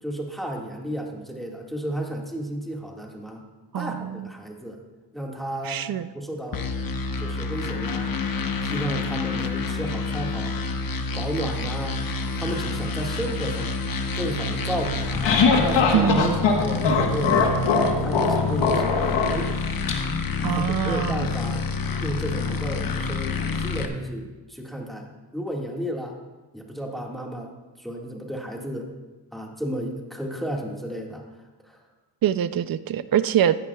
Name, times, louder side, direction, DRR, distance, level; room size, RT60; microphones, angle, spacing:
voice 1, 0.0-3.4 3.8-4.8 5.1-5.9 6.1-6.7 7.2-10.6 11.2-12.0 12.4-13.8 14.2-15.3 15.6-17.6 18.0-19.5 20.5-21.7 22.0-26.2 26.5-27.5 27.8-28.9 29.3-31.2 31.6-31.8, right 1 dB, ahead, -1 dB, 1.8 m, -33 dB
voice 2, 3.7-4.3 5.6-6.1 15.9-16.4 20.4-21.3 32.2-33.6, right 10 dB, 55° right, 14 dB, 0.5 m, -24 dB
sound 1, 6.5-23.9, left 4 dB, 50° left, 0.9 m, -28 dB
sound 2, 14.8-19.9, left 4 dB, 90° left, 1.3 m, -21 dB
15.0 x 11.0 x 2.3 m, 1.2 s
cardioid pair, 65°, 42 cm